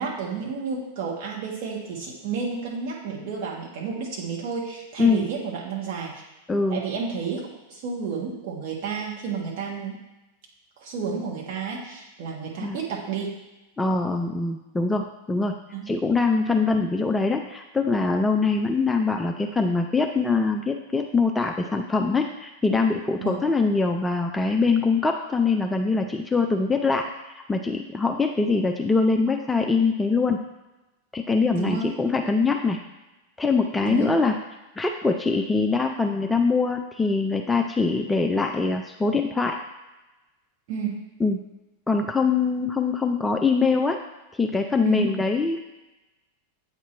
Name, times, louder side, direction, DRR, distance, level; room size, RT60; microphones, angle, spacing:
voice 1, 0.0-6.1 6.7-9.9 10.8-13.3 15.7-15.8 23.2-23.4 31.5-31.8 33.8-34.1 40.7-41.0 44.8-45.0, right 5 dB, 45° right, -3 dB, 1.6 m, -31 dB
voice 2, 6.5-6.8 12.6-12.8 13.8-15.6 15.9-27.1 27.3-30.4 31.1-32.8 33.4-34.4 34.8-39.6 41.2-41.4 41.9-44.0 44.3-45.7, left 4 dB, 10° left, 3 dB, 0.4 m, -23 dB
8.1 x 2.9 x 4.4 m, 1.0 s
figure-of-eight pair, 90°, 0 cm